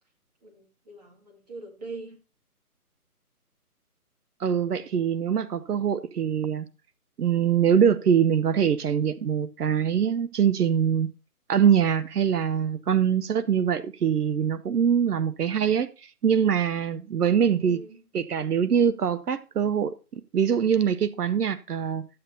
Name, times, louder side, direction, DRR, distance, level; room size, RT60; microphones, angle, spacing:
voice 1, 0.4-2.2 17.5-18.0, right 3 dB, 25° right, 1.9 m, -42 dB
voice 2, 4.4-6.7 7.2-11.1 11.5-17.8 18.1-22.1, right 8 dB, 80° right, 0.7 m, -23 dB
13.5 x 8.6 x 2.7 m
hypercardioid pair, 170°, 46 cm